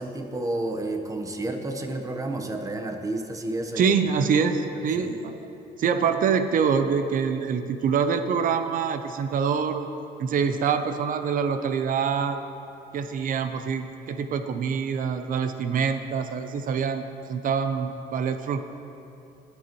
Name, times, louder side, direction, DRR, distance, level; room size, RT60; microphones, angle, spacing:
voice 1, 0.0-3.9 4.7-5.1, right 2 dB, 20° right, 4 dB, 1.0 m, -31 dB
voice 2, 3.8-5.4 5.8-9.9 10.2-12.4 12.9-18.6, right 6 dB, 55° right, 9 dB, 0.6 m, -25 dB
19.0 x 7.9 x 3.0 m, 2.8 s
cardioid pair, 110°, 17 cm